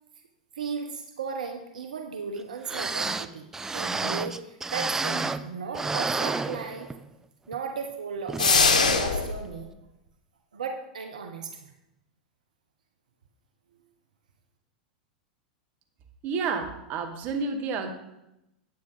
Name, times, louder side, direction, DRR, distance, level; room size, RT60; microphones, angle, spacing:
voice 1, 0.5-3.5 3.7-6.9 7.5-9.7 10.5-11.7, right 5 dB, 80° right, 5 dB, 0.9 m, -35 dB
sound 1, 2.4-2.5 2.7-5.5 5.7-7.1 7.5-7.6 8.3-8.5 9.0-9.1, right 3 dB, 10° right, 0.5 m, -30 dB
sound 2, 8.4-9.4, left 5 dB, 80° left, 1.0 m, -21 dB
voice 2, 16.2-17.9, right 4 dB, 45° right, 5 dB, 1.6 m, -30 dB
9.6 x 8.5 x 4.0 m, 0.87 s
hypercardioid pair, 95°, 4 cm